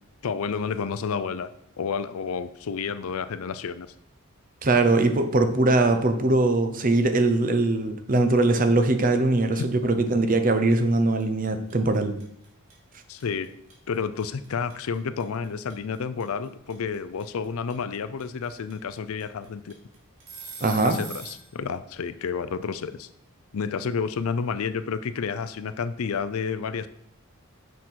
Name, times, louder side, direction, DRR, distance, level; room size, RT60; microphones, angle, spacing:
voice 1, 0.2-1.5 1.8-3.9 9.6-9.7 13.1-13.5 13.9-19.8 20.8-23.1 23.5-26.9, left 6 dB, 75° left, 13 dB, 0.4 m, -30 dB
voice 2, 4.6-12.2 20.6-21.0, right 2 dB, 40° right, 8 dB, 0.7 m, -21 dB
sound 1, 10.2-10.4 10.7-21.5, right 4 dB, 75° right, 2.2 m, -42 dB
6.3 x 5.7 x 4.5 m, 0.75 s
head